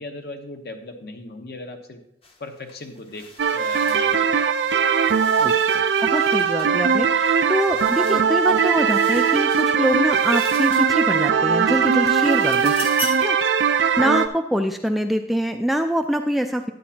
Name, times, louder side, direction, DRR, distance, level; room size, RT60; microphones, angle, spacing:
voice 1, 0.0-2.0 2.4-4.7, left 2 dB, 60° left, 5 dB, 1.0 m, -38 dB
sound 1, 2.2-2.4 2.7-11.3 11.7-13.4, left 3 dB, 30° left, 0.7 m, -40 dB
sound 2, 3.4-14.3, right 6 dB, 90° right, 0.5 m, -20 dB
voice 2, 5.4-12.7 13.2-13.4 14.0-16.7, equal, ahead, 4 dB, 0.3 m, -24 dB
10.5 x 9.2 x 2.9 m, 0.80 s
head